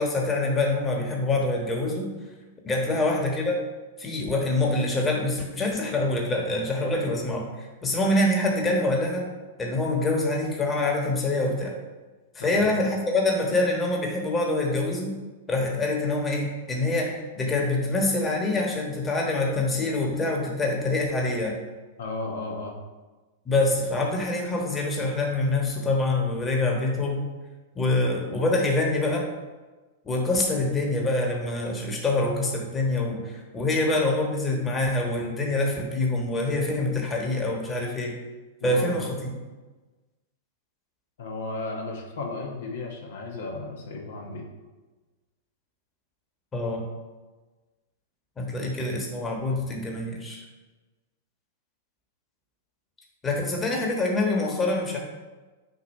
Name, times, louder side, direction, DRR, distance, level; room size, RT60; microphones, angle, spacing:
voice 1, 0.0-2.1 2.6-3.6 4.0-9.3 9.6-11.7 12.3-15.1 15.5-21.6 23.4-27.3 27.7-29.3 30.0-38.1 38.6-39.1 46.5-46.9 48.4-50.4 53.2-55.0, left 2 dB, 20° left, 0 dB, 1.3 m, -25 dB
voice 2, 22.0-22.7 38.6-39.0 41.2-44.4, left 3 dB, 70° left, 0 dB, 1.1 m, -34 dB
6.6 x 2.7 x 5.4 m, 1.2 s
hypercardioid pair, 110°, 0 cm